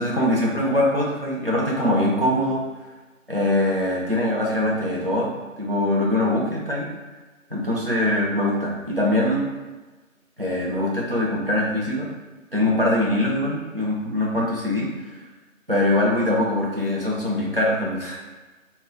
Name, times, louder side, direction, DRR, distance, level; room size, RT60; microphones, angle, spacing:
voice 1, 0.0-2.7 3.3-5.3 5.6-6.9 7.5-9.5 10.4-12.1 12.5-14.9 15.7-18.2, left 1 dB, 45° right, -5 dB, 0.6 m, -22 dB
2.1 x 2.1 x 3.7 m, 1.2 s
figure-of-eight pair, 170°, 41 cm